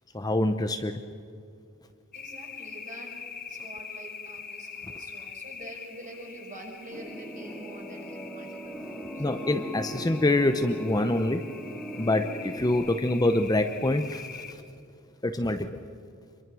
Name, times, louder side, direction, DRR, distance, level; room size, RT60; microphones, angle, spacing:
voice 1, 0.1-1.0 9.2-11.4 12.0-14.6 15.2-15.8, left 1 dB, 15° left, 7 dB, 0.8 m, -26 dB
sound 1, 2.1-14.5, left 6 dB, 40° left, 1.9 m, -44 dB
voice 2, 2.1-3.2 3.5-9.2, right 1 dB, 35° right, 0 dB, 5.8 m, -46 dB
sound 2, 6.9-12.7, equal, ahead, 2.3 m, -39 dB
27.0 x 23.0 x 6.2 m, 2.4 s
head